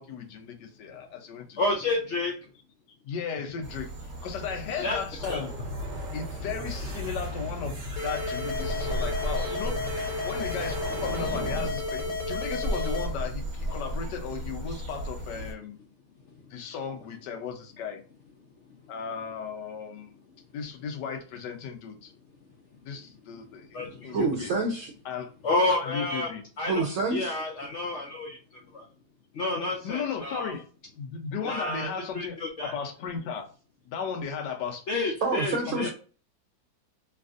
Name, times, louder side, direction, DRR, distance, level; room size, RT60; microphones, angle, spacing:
voice 1, 0.0-1.7 3.0-3.9 4.2-5.5 6.1-9.8 10.2-15.8 16.5-18.0 18.9-20.1 20.5-22.1 22.9-23.7 24.0-24.5 25.0-25.3 25.7-26.4 29.8-30.7 30.9-33.4 33.9-35.1 35.7-35.9, left 6 dB, 90° left, 1.3 m, -35 dB
voice 2, 1.6-2.3 4.8-5.0 5.3-5.4 23.7-24.2 25.4-26.9 27.1-28.4 28.7-28.9 29.3-30.5 31.4-31.9 32.1-32.8 34.9-35.9, left 2 dB, 70° left, 0.6 m, -29 dB
sound 1, 3.6-15.5, equal, 35° right, 0.9 m, -36 dB
sound 2, 5.2-11.7, equal, 50° right, 1.2 m, -37 dB
sound 3, 8.0-13.0, left 3 dB, 55° left, 1.0 m, -33 dB
voice 3, 24.1-24.9 26.7-27.3 35.2-35.9, right 3 dB, 65° right, 0.8 m, -27 dB
3.3 x 2.4 x 2.4 m
omnidirectional pair, 1.8 m